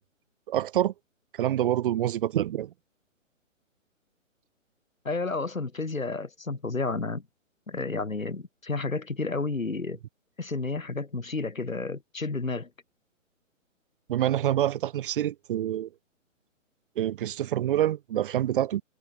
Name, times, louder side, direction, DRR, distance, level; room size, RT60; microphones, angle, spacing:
voice 1, 0.5-0.9 1.4-2.7 14.1-15.9 17.0-18.8, right 12 dB, 40° right, 3.3 m, -26 dB
voice 2, 5.1-7.2 7.7-10.0 10.4-12.7, left 3 dB, 85° left, 5.1 m, -31 dB
figure-of-eight pair, 135°, 39 cm